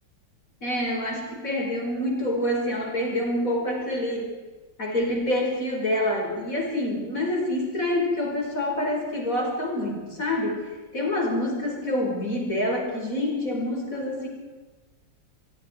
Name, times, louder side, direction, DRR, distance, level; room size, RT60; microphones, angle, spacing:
voice 1, 0.6-4.3 4.8-14.3, left 1 dB, 45° left, -1 dB, 5.6 m, -27 dB
25.0 x 23.0 x 4.6 m, 1.3 s
omnidirectional pair, 2.1 m